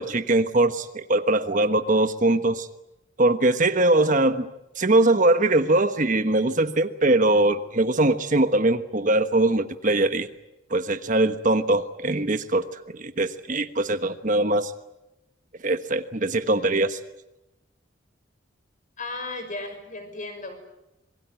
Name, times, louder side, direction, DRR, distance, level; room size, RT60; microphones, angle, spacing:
voice 1, 0.0-2.7 3.2-4.5 4.8-10.3 10.7-14.7 15.6-17.0, right 2 dB, 40° right, 9 dB, 1.2 m, -22 dB
voice 2, 19.0-20.7, left 2 dB, 40° left, 7 dB, 6.1 m, -35 dB
26.5 x 22.5 x 9.3 m, 0.91 s
head